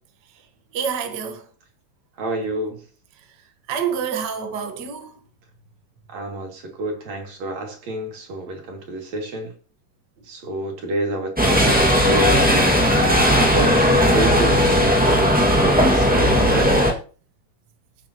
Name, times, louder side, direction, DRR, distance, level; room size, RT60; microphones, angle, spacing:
voice 1, 0.7-1.4 3.7-5.2, right 7 dB, 75° right, 0.9 m, -27 dB
voice 2, 2.2-2.8 6.1-9.5 10.3-12.9 13.5-16.8, right 1 dB, 50° right, 3.6 m, -29 dB
sound 1, 11.4-16.9, equal, 10° right, 0.4 m, -17 dB
22.5 x 7.6 x 3.0 m
omnidirectional pair, 4.1 m